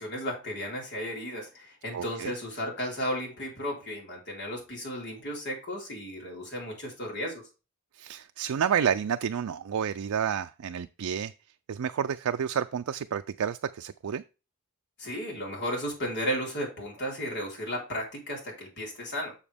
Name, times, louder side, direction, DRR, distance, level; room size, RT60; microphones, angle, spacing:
voice 1, 0.0-7.4 15.0-19.4, equal, 55° left, 4.0 m, -34 dB
voice 2, 1.9-2.3 7.9-11.3 11.7-14.2, right 8 dB, 75° right, 0.4 m, -30 dB
7.2 x 6.9 x 3.4 m
head